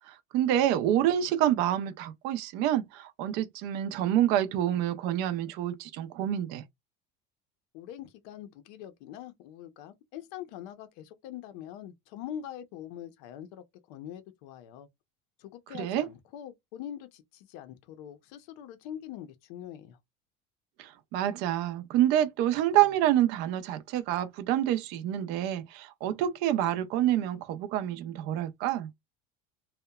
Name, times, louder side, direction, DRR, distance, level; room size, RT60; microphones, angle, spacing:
voice 1, 0.1-6.6 15.8-16.1 20.8-28.9, right 12 dB, 55° right, 0.4 m, -27 dB
voice 2, 7.7-14.9 15.4-20.0, left 10 dB, 70° left, 0.5 m, -43 dB
2.7 x 2.1 x 2.2 m
cardioid pair, 165°, 21 cm